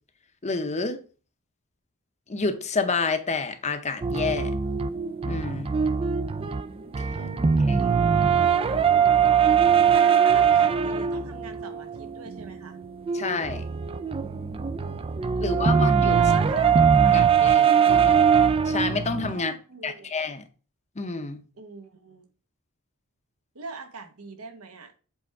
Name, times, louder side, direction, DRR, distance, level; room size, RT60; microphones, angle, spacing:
voice 1, 0.4-1.0 2.3-4.5 5.2-5.7 7.0-7.1 7.7-7.8 13.1-13.6 15.4-16.2 17.1-18.3 18.6-19.5 19.8-20.4 21.0-21.4, left 4 dB, 30° left, 0.7 m, -29 dB
sound 1, 4.0-19.3, right 7 dB, 25° right, 0.3 m, -21 dB
voice 2, 7.1-7.8 9.9-12.8 15.3-15.8 16.1-17.2 19.3-20.1 21.6-22.3 23.5-24.9, right 4 dB, 75° right, 1.1 m, -42 dB
7.7 x 3.4 x 4.6 m
head